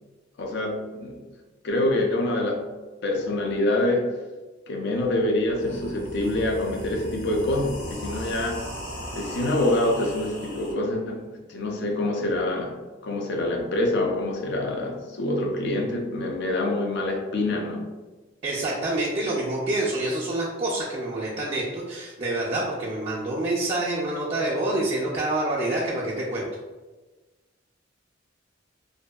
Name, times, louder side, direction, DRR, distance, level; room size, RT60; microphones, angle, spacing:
voice 1, 0.4-1.3 1.6-2.7 3.0-4.1 4.7-8.7 9.1-12.8 13.0-17.9, left 1 dB, 60° left, 1 dB, 0.4 m, -26 dB
sound 1, 5.0-5.1 5.5-10.7, equal, 85° left, 1.2 m, -37 dB
voice 2, 18.4-26.5, right 2 dB, 30° right, -6 dB, 0.4 m, -27 dB
2.6 x 2.3 x 2.2 m, 1.2 s
head